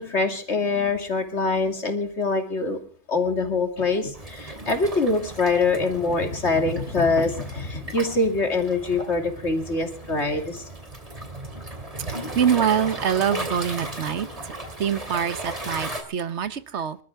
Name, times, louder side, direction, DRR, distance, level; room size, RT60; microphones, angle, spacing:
voice 1, 0.0-2.8 3.1-10.6, left 3 dB, 80° left, 5 dB, 3.0 m, -24 dB
Waves surf, 4.1-16.0, right 1 dB, 30° right, 2.9 m, -36 dB
voice 2, 12.3-14.3 14.8-17.0, right 8 dB, 85° right, 14 dB, 1.3 m, -24 dB
26.0 x 13.0 x 3.5 m, 0.40 s
omnidirectional pair, 1.1 m